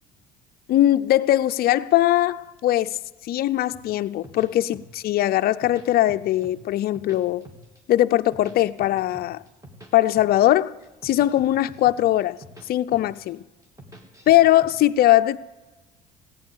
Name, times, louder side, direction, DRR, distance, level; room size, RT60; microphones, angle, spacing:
voice 1, 0.7-3.0 3.3-7.5 7.9-9.4 9.9-10.7 11.0-12.4 12.7-13.4 14.3-15.4, left 14 dB, 50° left, 0.5 m, -20 dB
sound 1, 3.7-5.1 5.4-6.6 6.8-7.8 8.1-9.9 10.2-10.5 10.8-12.7 12.9-13.3 13.6-14.7, right 1 dB, 15° right, 3.1 m, -45 dB
15.5 x 9.5 x 6.9 m
hypercardioid pair, 65°, 21 cm